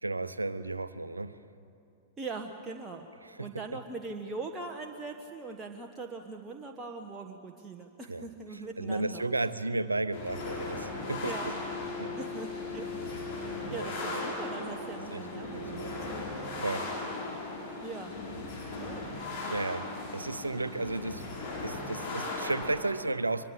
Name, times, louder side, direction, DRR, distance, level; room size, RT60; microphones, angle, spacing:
voice 1, 0.0-1.4 3.2-3.8 8.1-8.3 8.5-11.5 12.0-12.1 13.7-13.9 15.1-15.9 16.6-16.9 18.2-18.3 19.4-21.2 21.6-23.5, right 2 dB, 85° right, 14 dB, 0.8 m, -34 dB
voice 2, 2.2-3.1 3.4-9.2 11.2-11.5 12.2-12.9 13.4-16.5 17.8-18.1 18.7-19.1, right 3 dB, 15° right, 2 dB, 1.4 m, -41 dB
sound 1, 10.1-22.7, left 2 dB, 40° left, 7.5 m, -37 dB
24.0 x 22.5 x 8.1 m, 2.6 s
figure-of-eight pair, 95°, 0 cm